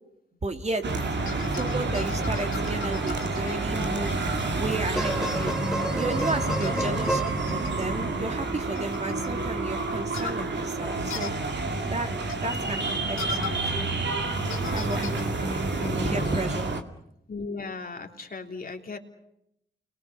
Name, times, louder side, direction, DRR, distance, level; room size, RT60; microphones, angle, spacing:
voice 1, 0.4-0.9 1.5-5.5 5.9-7.2 7.5-11.3 11.9-12.1 12.4-13.9 14.7-15.6 16.0-16.7, right 2 dB, 35° right, 5 dB, 3.0 m, -33 dB
sound 1, 0.8-16.8, right 2 dB, 60° right, 2.3 m, -29 dB
sound 2, 1.3-4.5 5.0-5.2 6.2-6.3 6.6-7.8 8.7-9.3 10.1-10.4 11.1-11.3 12.3-12.4 13.2-13.6 14.5-15.2, left 6 dB, 75° left, 2.8 m, -39 dB
sound 3, 4.7-8.2 9.7-9.8, right 1 dB, 5° right, 2.5 m, -32 dB
voice 2, 15.8-16.4 17.3-19.0, left 4 dB, 45° left, 3 dB, 3.4 m, -36 dB
29.5 x 22.5 x 6.8 m, 0.78 s
cardioid pair, 55°, 20 cm